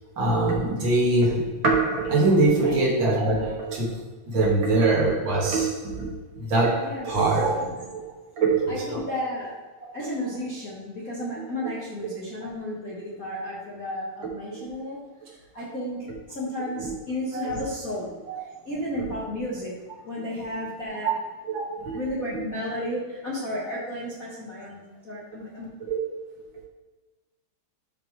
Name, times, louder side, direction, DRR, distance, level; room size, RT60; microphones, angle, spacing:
voice 1, 0.2-3.9 4.3-8.0 8.4-9.0 14.5-14.6 17.3-17.5 18.3-18.4 19.0-19.1 21.5-22.0 25.9-26.0, right 2 dB, 40° right, -4 dB, 2.4 m, -23 dB
voice 2, 6.8-7.2 7.6-7.7 8.7-9.6 9.9-19.8 20.0-21.2 21.9-25.6, left 1 dB, 60° left, -7 dB, 0.8 m, -33 dB
12.5 x 5.1 x 3.3 m, 1.2 s
omnidirectional pair, 3.9 m